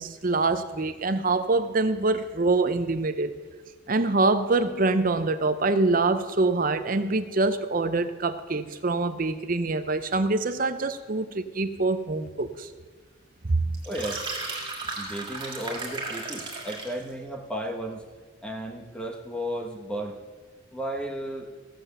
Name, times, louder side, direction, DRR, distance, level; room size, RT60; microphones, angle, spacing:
voice 1, 0.0-3.3 3.9-12.7 13.4-13.6, right 3 dB, 45° right, 0.7 m, -25 dB
sound 1, 13.7-17.0, right 3 dB, 25° right, 2.3 m, -35 dB
voice 2, 13.8-14.2 15.0-18.0 18.4-20.2 20.7-21.5, right 1 dB, 5° left, 1.1 m, -34 dB
15.5 x 7.7 x 6.7 m
head